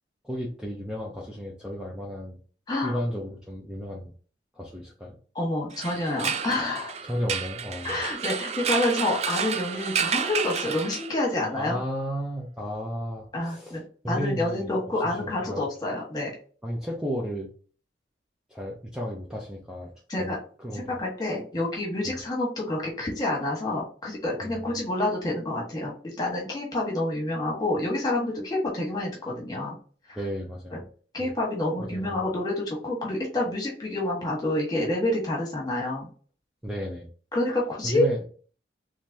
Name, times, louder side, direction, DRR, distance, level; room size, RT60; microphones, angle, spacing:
voice 1, 0.2-2.4 2.8-4.1 4.5-5.2 7.0-8.1 11.6-13.8 14.0-14.7 15.0-15.7 16.6-17.5 18.5-19.9 20.2-21.0 22.0-22.2 24.4-24.6 30.1-30.8 31.8-32.2 36.6-37.1 37.8-38.2, equal, 5° right, -3 dB, 0.7 m, -33 dB
voice 2, 2.7-3.0 5.3-6.9 7.8-11.8 13.3-13.8 14.1-16.3 20.1-20.4 20.7-29.7 30.1-30.2 30.7-30.8 31.1-36.1 37.3-38.0, left 1 dB, 20° left, -2 dB, 1.6 m, -28 dB
sound 1, 5.7-11.4, right 7 dB, 35° right, 0.3 m, -30 dB
3.9 x 3.2 x 2.8 m, 0.42 s
head